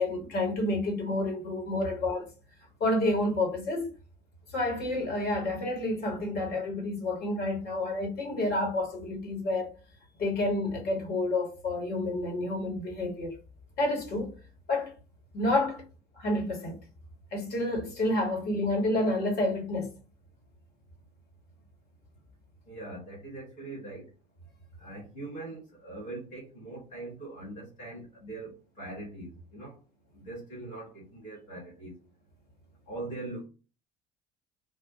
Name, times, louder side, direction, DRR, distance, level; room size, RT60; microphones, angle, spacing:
voice 1, 0.0-2.3 2.8-3.9 4.5-9.7 10.2-13.3 13.8-14.3 14.7-14.9 15.3-15.8 16.2-16.8 17.3-19.9, left 2 dB, 50° left, 1.4 m, -29 dB
voice 2, 22.7-24.1 24.8-29.8 30.1-31.9 32.9-33.5, right 2 dB, 80° left, 1.5 m, -41 dB
3.5 x 2.1 x 2.6 m
figure-of-eight pair, 55°, 21 cm